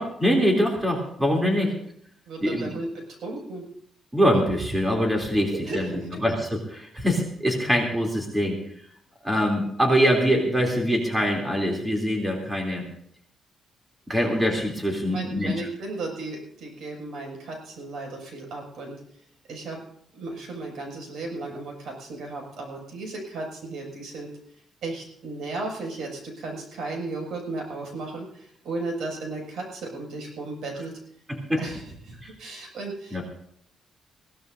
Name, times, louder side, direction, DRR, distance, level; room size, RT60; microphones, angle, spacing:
voice 1, 0.0-1.7 2.4-2.7 4.1-8.6 9.2-12.8 14.1-15.7 31.3-31.6 32.2-32.3 33.1-33.2, equal, 10° right, 0 dB, 3.1 m, -24 dB
voice 2, 2.3-2.9 3.2-3.6 5.5-6.1 15.1-19.0 19.5-19.8 20.1-24.3 24.8-30.9 31.6-33.2, right 2 dB, 75° right, 0 dB, 6.4 m, -35 dB
22.5 x 16.5 x 2.7 m, 0.68 s
cardioid pair, 150°, 0 cm